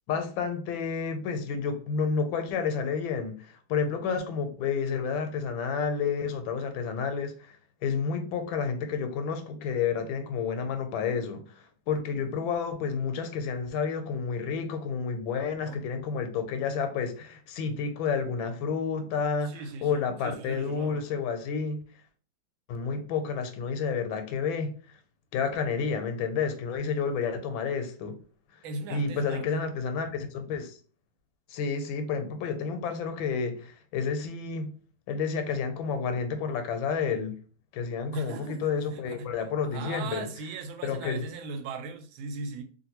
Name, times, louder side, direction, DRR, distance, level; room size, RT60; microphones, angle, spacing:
voice 1, 0.1-7.3 7.8-21.8 22.7-24.7 25.3-28.2 28.9-30.8 31.5-34.7 35.1-37.3 37.7-40.3 40.8-41.2, left 6 dB, 80° left, 1.3 m, -30 dB
voice 2, 19.5-21.0 28.6-29.7 38.1-38.6 38.9-39.3 39.7-42.6, right 3 dB, 85° right, 1.4 m, -38 dB
3.2 x 2.5 x 2.8 m
omnidirectional pair, 2.1 m